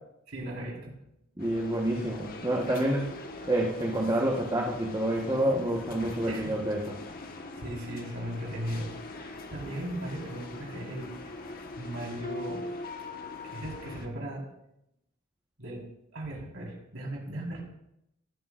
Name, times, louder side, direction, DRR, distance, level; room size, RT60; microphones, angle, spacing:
voice 1, 0.3-0.9 6.3-6.4 7.6-11.2 11.8-12.7 13.4-14.4 15.6-17.6, right 1 dB, 65° right, -3 dB, 4.3 m, -37 dB
sound 1, 1.4-14.1, left 2 dB, 45° left, 1.3 m, -42 dB
voice 2, 1.4-3.1 3.5-7.0, right 1 dB, 20° right, -1 dB, 1.2 m, -28 dB
18.5 x 12.0 x 2.5 m, 0.82 s
head